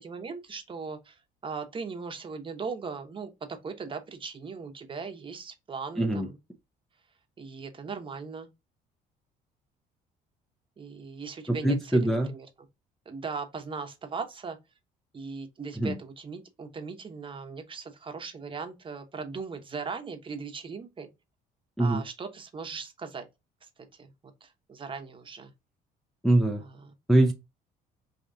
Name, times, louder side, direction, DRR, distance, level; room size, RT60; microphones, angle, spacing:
voice 1, 0.0-6.4 7.4-8.5 10.8-12.7 13.1-14.6 15.1-21.1 21.8-23.3 23.6-25.5 26.6-26.9, right 5 dB, 30° right, 0.9 m, -39 dB
voice 2, 11.6-12.3 15.8-15.9 21.8-22.0 26.2-26.6 27.1-27.3, right 1 dB, ahead, 0.6 m, -23 dB
4.6 x 2.9 x 2.6 m
cardioid pair, 110°, 17 cm